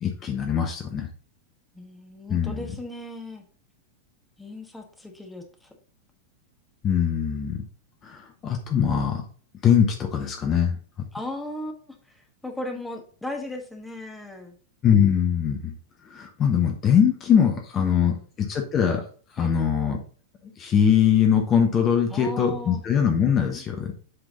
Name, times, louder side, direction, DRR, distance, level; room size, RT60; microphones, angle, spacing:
voice 1, 0.0-1.1 2.3-2.7 6.8-7.6 8.0-9.2 9.6-10.8 14.8-15.7 16.1-19.0 19.3-20.0 20.6-23.9, left 8 dB, 30° left, 3 dB, 1.1 m, -22 dB
voice 2, 1.7-3.4 4.4-5.7 11.1-14.5 17.7-18.2 19.4-19.5 22.1-22.8, left 2 dB, 5° left, 3 dB, 1.3 m, -37 dB
7.9 x 3.8 x 3.9 m, 0.42 s
figure-of-eight pair, 90°, 0 cm